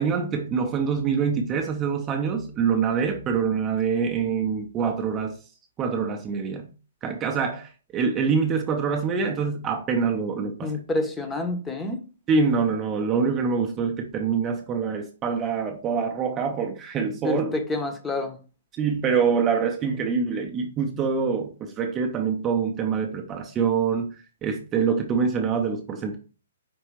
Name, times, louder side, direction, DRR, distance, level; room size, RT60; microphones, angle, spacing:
voice 1, 0.0-5.3 5.8-6.7 7.0-10.7 12.3-17.5 18.8-24.1 24.4-26.2, right 6 dB, 20° right, 0.6 m, -25 dB
voice 2, 10.6-12.0 17.2-18.4, left 2 dB, 10° left, 0.8 m, -28 dB
5.2 x 3.2 x 3.1 m
figure-of-eight pair, 120°, 0 cm